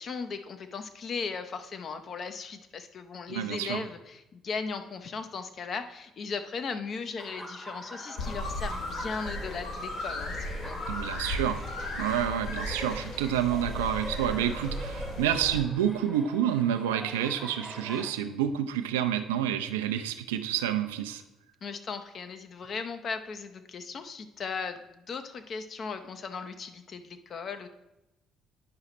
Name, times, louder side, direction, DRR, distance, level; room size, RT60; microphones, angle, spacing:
voice 1, 0.0-10.8 21.6-27.7, left 5 dB, 45° left, 9 dB, 0.6 m, -37 dB
voice 2, 3.3-3.8 10.9-11.6 12.0-21.2, right 10 dB, 70° right, 8 dB, 0.4 m, -29 dB
Laughter, 7.2-18.1, equal, ahead, 0.9 m, -43 dB
sound 1, 8.2-15.6, left 1 dB, 65° left, 1.4 m, -36 dB
9.5 x 5.6 x 3.0 m, 0.95 s
figure-of-eight pair, 50°, 0 cm